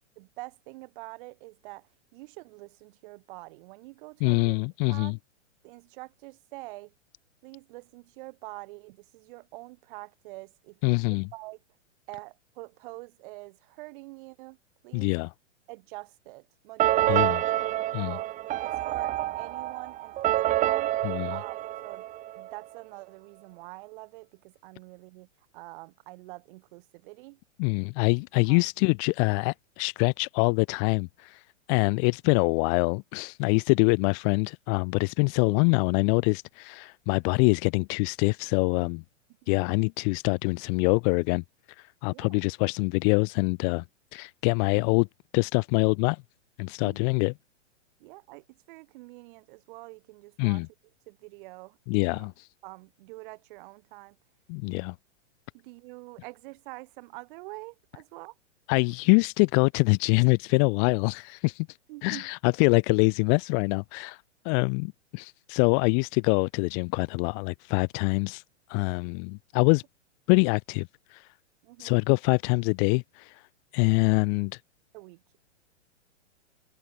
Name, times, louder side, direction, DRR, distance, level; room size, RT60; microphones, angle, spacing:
voice 1, 0.2-4.6 4.9-5.1 5.6-6.9 7.4-11.0 11.3-11.6 12.1-14.6 14.8-15.1 15.7-17.4 18.0-18.3 18.6-20.9 21.3-22.1 22.4-25.3 25.5-27.4 28.5-28.7 39.4-39.6 42.1-42.4 46.8-47.1 48.0-50.6 51.1-52.3 52.6-54.2 55.5-58.4 61.9-62.3 71.6-72.0 74.9-75.2, right 23 dB, 45° right, 5.6 m, -45 dB
voice 2, 4.2-5.2 10.8-11.3 14.9-15.3 17.1-17.4 17.9-18.2 21.0-21.4 27.6-31.4 31.7-39.0 39.5-41.4 42.0-43.8 44.1-45.1 45.3-46.2 46.6-47.3 50.4-50.7 51.9-52.5 54.5-54.9 58.7-61.7 62.0-64.2 64.4-68.4 68.7-69.8 70.3-71.2 71.8-73.4 73.7-74.6, left 40 dB or more, 25° left, 0.6 m, -25 dB
sound 1, 16.8-22.5, right 14 dB, 20° right, 1.1 m, -27 dB
hypercardioid pair, 140°, 36 cm